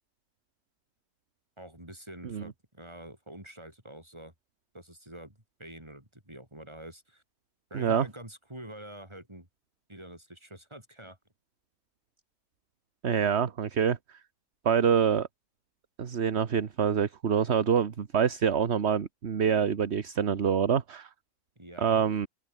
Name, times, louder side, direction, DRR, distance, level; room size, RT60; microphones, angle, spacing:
voice 1, 1.6-4.3 4.7-7.2 7.7-9.5 9.9-11.2 21.6-22.0, right 1 dB, 15° right, 5.7 m, -46 dB
voice 2, 7.7-8.1 13.0-14.0 14.6-15.3 16.0-21.1 21.8-22.3, right 7 dB, 50° right, 1.4 m, -26 dB
omnidirectional pair, 1.6 m